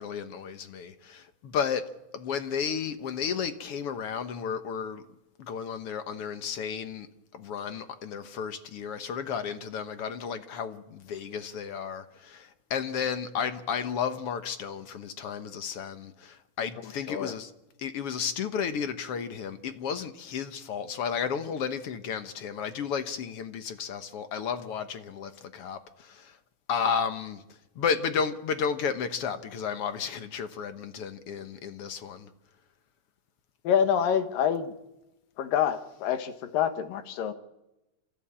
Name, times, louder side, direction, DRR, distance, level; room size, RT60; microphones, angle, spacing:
voice 1, 0.0-1.8 2.1-5.0 5.4-7.1 7.3-17.5 17.8-26.4 26.7-27.4 27.7-32.3, left 6 dB, 60° left, 1.6 m, -33 dB
voice 2, 33.6-34.7 35.4-37.3, left 8 dB, 80° left, 3.1 m, -26 dB
27.0 x 15.0 x 8.7 m
omnidirectional pair, 3.9 m